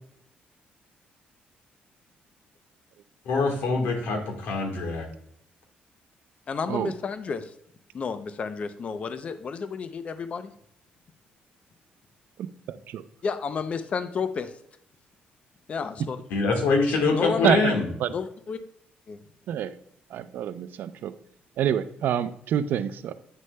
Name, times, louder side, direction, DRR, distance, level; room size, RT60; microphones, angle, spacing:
voice 1, 3.2-5.1 16.3-17.9, left 3 dB, 90° left, 3 dB, 1.5 m, -24 dB
voice 2, 6.5-7.5 7.9-10.5 13.2-14.5 15.7-16.2 17.1-17.6 18.1-18.6 19.1-19.2, left 5 dB, 40° left, 10 dB, 0.5 m, -31 dB
voice 3, 12.4-13.1 17.4-18.1 19.5-19.7 20.1-21.1 21.6-23.1, right 9 dB, 75° right, 13 dB, 0.5 m, -27 dB
9.2 x 6.3 x 2.2 m, 0.69 s
cardioid pair, 125°, 3 cm